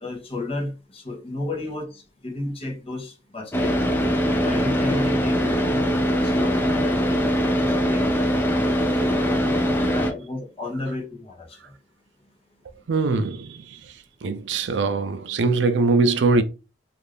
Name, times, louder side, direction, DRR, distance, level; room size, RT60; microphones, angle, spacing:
voice 1, 0.0-3.8 4.2-8.1 9.1-11.6, left 2 dB, 35° left, 0.8 m, -33 dB
Car / Idling, 3.5-10.1, equal, 10° left, 0.5 m, -22 dB
voice 2, 12.9-13.8 14.2-16.4, right 3 dB, 80° right, 0.4 m, -22 dB
2.6 x 2.4 x 3.2 m
head